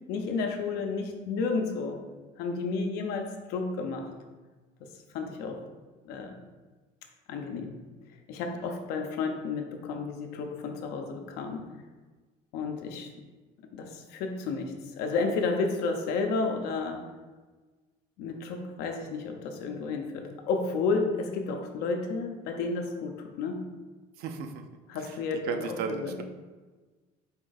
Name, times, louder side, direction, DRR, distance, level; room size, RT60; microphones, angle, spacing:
voice 1, 0.0-2.0 2.4-4.1 4.8-4.9 5.1-5.6 6.0-6.4 7.3-7.8 8.3-11.7 12.5-13.1 13.7-17.1 18.2-23.7 24.9-26.2, left 4 dB, 80° left, 4 dB, 0.6 m, -32 dB
voice 2, 24.2-24.6 25.4-26.2, right 6 dB, 70° right, 6 dB, 0.5 m, -34 dB
4.3 x 2.6 x 3.9 m, 1.3 s
cardioid pair, 115°, 17 cm